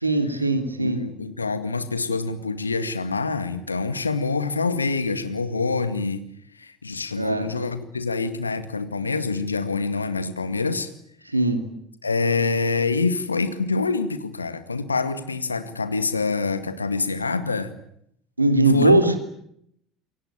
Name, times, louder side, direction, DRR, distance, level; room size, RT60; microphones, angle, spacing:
voice 1, 0.0-1.0 7.2-7.5 11.3-11.6 18.4-19.2, right 2 dB, 90° right, 8 dB, 3.0 m, -20 dB
voice 2, 0.8-6.2 6.5-10.9 12.0-17.7 18.7-19.2, left 4 dB, 85° left, 11 dB, 2.0 m, -26 dB
28.0 x 23.5 x 8.8 m, 0.72 s
figure-of-eight pair, 65°, 0 cm